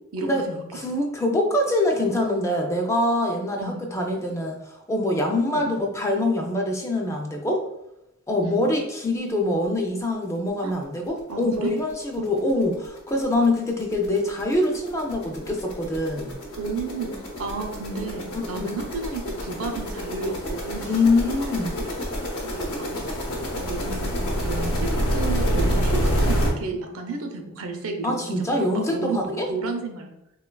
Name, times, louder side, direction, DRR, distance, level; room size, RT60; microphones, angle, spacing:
voice 1, 0.1-0.6 3.6-3.8 5.5-5.7 8.4-8.6 10.6-10.7 11.3-11.7 12.2-12.3 16.6-17.1 17.4-20.9 21.8-21.9 22.4-23.0 23.5-30.1, right 3 dB, 80° right, 3 dB, 0.5 m, -32 dB
voice 2, 0.7-7.6 8.3-16.3 18.3-18.7 20.8-21.7 28.0-29.5, left 1 dB, 15° left, 1 dB, 0.3 m, -24 dB
sound 1, 11.1-11.2 11.5-11.7 11.9-26.5, equal, 80° left, 0.8 m, -28 dB
3.7 x 2.2 x 2.2 m, 0.87 s
head